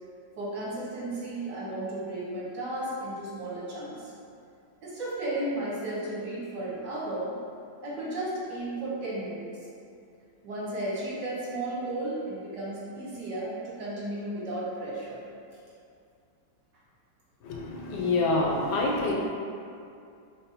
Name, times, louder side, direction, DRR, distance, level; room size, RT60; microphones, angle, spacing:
voice 1, 0.4-4.1 4.8-7.3 7.8-9.5 10.4-15.2, right 1 dB, 80° right, -7 dB, 1.8 m, -34 dB
voice 2, 17.4-19.1, left 2 dB, 75° left, -2 dB, 1.3 m, -26 dB
5.4 x 2.1 x 4.0 m, 2.4 s
omnidirectional pair, 1.8 m